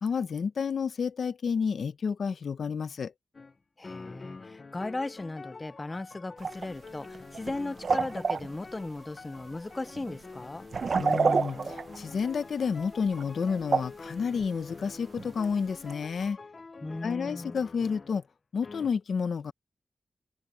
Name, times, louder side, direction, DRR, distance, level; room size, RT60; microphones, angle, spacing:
voice 1, 0.0-3.1 11.0-16.4 17.0-18.2 18.5-19.5, left 6 dB, 80° left, 0.8 m, -30 dB
sound 1, 3.3-3.6 3.8-18.3 18.6-18.9, left 4 dB, 40° left, 0.8 m, -47 dB
voice 2, 3.8-10.7 16.8-17.6, left 2 dB, 25° left, 0.4 m, -37 dB
sound 2, 6.4-6.7 6.9-7.6 7.8-8.5 9.5-9.6 10.0-10.2 10.7-12.3 13.2-13.4 13.7-14.1 14.7-14.8 15.2-15.3 15.9-16.0, right 5 dB, 60° right, 0.8 m, -28 dB
wide cardioid pair, 135°, 0 cm